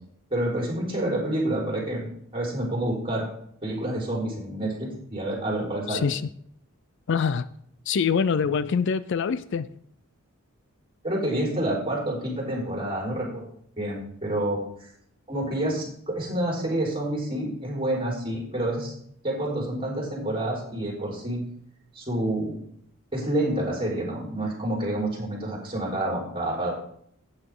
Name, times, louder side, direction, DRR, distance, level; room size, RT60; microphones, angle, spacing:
voice 1, 0.3-2.1 2.3-3.3 3.6-6.1 8.5-8.6 11.0-13.5 13.8-14.9 15.3-18.9 19.2-21.4 21.9-22.6 23.1-26.7, right 1 dB, 25° right, 4.1 m, -28 dB
voice 2, 5.9-6.2 7.1-7.5 7.9-9.7, left 6 dB, 60° left, 0.4 m, -24 dB
12.0 x 9.0 x 3.8 m
head